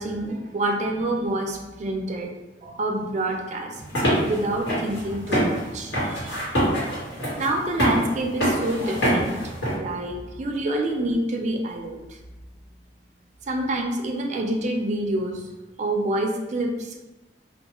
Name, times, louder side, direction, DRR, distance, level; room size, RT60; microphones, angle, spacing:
voice 1, 0.0-2.3 2.6-3.8 4.2-6.5 7.4-9.3 9.8-12.2 13.5-15.5 15.8-17.0, right 1 dB, 40° right, 1 dB, 0.4 m, -27 dB
sound 1, 3.8-9.7, equal, 80° left, 1.3 m, -25 dB
2.3 x 2.2 x 2.9 m, 1.1 s
head